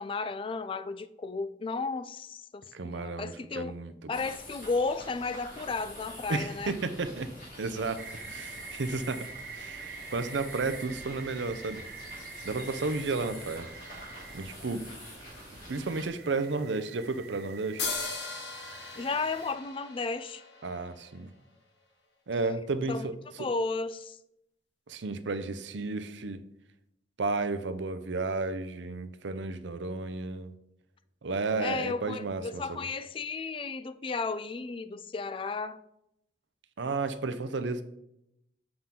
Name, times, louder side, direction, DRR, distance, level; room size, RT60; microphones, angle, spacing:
voice 1, 0.0-3.7 4.1-6.8 19.0-20.4 22.9-23.1 23.4-24.2 31.6-35.8, left 4 dB, 30° left, 0.3 m, -33 dB
voice 2, 2.7-4.2 6.3-7.3 7.6-9.3 9.5-11.8 12.4-13.7 14.3-14.9 15.7-17.9 20.6-21.3 22.3-23.1 24.9-26.4 27.2-30.5 31.2-32.8 36.8-37.8, right 3 dB, 75° right, 0.6 m, -33 dB
sound 1, 4.1-16.1, left 1 dB, 50° left, 2.8 m, -47 dB
sound 2, 8.0-19.5, right 4 dB, 55° right, 0.9 m, -46 dB
sound 3, 17.8-21.3, left 4 dB, 65° left, 1.5 m, -38 dB
7.8 x 5.6 x 3.7 m
head